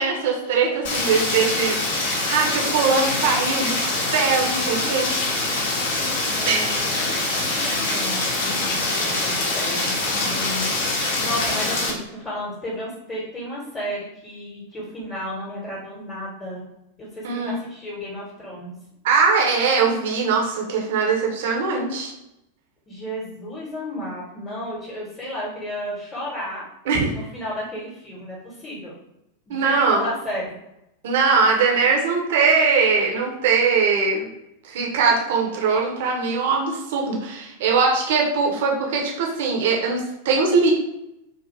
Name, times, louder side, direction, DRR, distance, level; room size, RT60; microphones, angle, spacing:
voice 1, 0.0-5.5 6.4-6.7 17.2-17.6 19.0-22.1 26.9-27.1 29.5-30.0 31.0-34.3 34.6-40.7, right 4 dB, 55° right, -1 dB, 0.6 m, -21 dB
Rain, 0.8-11.9, left 2 dB, 55° left, 0.7 m, -24 dB
voice 2, 6.3-7.0 7.6-10.9 11.2-16.6 17.0-18.7 22.9-26.6 27.1-28.9 29.5-30.5, equal, 20° left, -7 dB, 0.9 m, -33 dB
2.6 x 2.4 x 2.8 m, 0.86 s
figure-of-eight pair, 90°, 0 cm